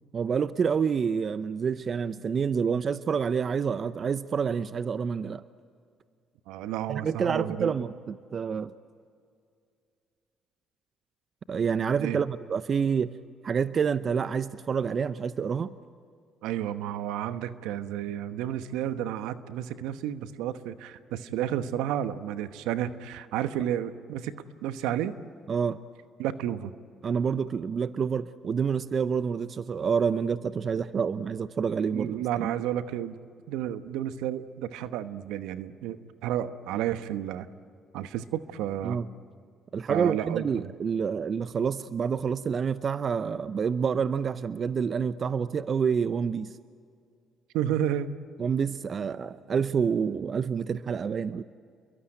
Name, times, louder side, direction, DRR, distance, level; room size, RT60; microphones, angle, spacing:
voice 1, 0.1-5.4 6.9-8.7 11.5-13.1 13.4-15.7 25.5-25.8 27.0-32.5 38.8-39.1 39.7-46.5 48.4-51.4, right 6 dB, 50° right, 14 dB, 0.7 m, -28 dB
voice 2, 6.5-7.7 12.0-12.2 16.4-24.3 24.6-25.1 26.2-26.7 31.9-33.2 33.5-37.5 37.9-39.0 39.9-40.4 47.5-48.1, right 11 dB, 80° right, 11 dB, 1.1 m, -31 dB
29.5 x 22.5 x 9.0 m, 2.3 s
hypercardioid pair, 55°, 0 cm